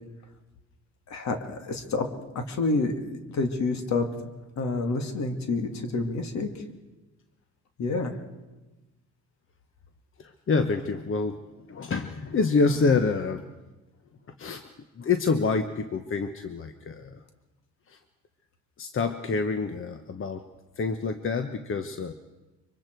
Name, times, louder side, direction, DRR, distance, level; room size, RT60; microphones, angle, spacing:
voice 1, 1.1-2.1 2.3-2.9 3.3-4.1 4.6-6.5 7.8-8.1, left 3 dB, 65° left, 5 dB, 2.5 m, -28 dB
voice 2, 10.2-11.4 11.7-13.4 14.4-14.6 15.0-17.2 17.9-18.0 18.8-20.4 20.8-22.1, left 4 dB, 45° left, 8 dB, 1.2 m, -27 dB
24.5 x 24.0 x 4.7 m, 1.1 s
cardioid pair, 90°, 30 cm